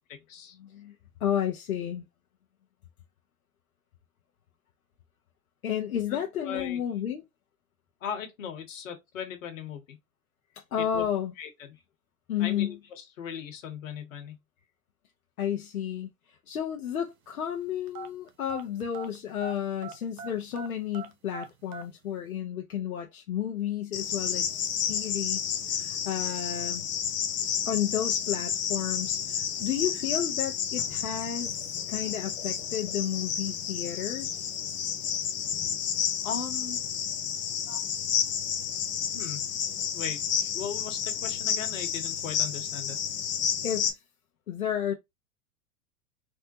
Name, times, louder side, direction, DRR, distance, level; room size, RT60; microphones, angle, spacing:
voice 1, 0.6-0.9 1.2-2.0 5.6-7.2 10.7-11.3 12.3-12.8 15.4-16.1 16.5-26.8 27.7-31.6 31.9-34.5 43.6-43.9 44.5-44.9, left 9 dB, 80° left, 0.8 m, -32 dB
voice 2, 6.4-6.8 8.0-10.0 10.8-11.0 11.4-11.8 12.4-12.7 13.2-14.4 36.2-36.8 37.7-37.8 39.1-39.4 39.9-40.2 40.5-43.0, left 7 dB, 65° left, 1.3 m, -38 dB
sound 1, 17.9-19.6 19.8-21.9, right 4 dB, 80° right, 0.8 m, -40 dB
Cricket, 23.9-43.9, left 8 dB, 25° left, 0.6 m, -31 dB
3.5 x 2.1 x 2.7 m
hypercardioid pair, 100°, 42 cm